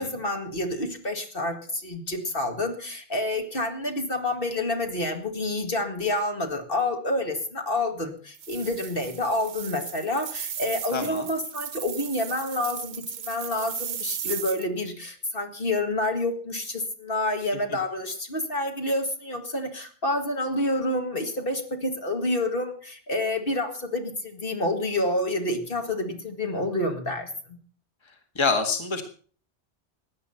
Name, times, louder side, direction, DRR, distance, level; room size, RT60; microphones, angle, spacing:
voice 1, 0.0-27.6, left 1 dB, 50° left, 5 dB, 2.1 m, -28 dB
sound 1, 8.3-14.7, right 8 dB, 70° right, 1.1 m, -36 dB
voice 2, 10.9-11.3 28.3-29.0, left 4 dB, 25° left, 6 dB, 1.6 m, -26 dB
16.5 x 10.5 x 5.6 m, 0.43 s
omnidirectional pair, 1.2 m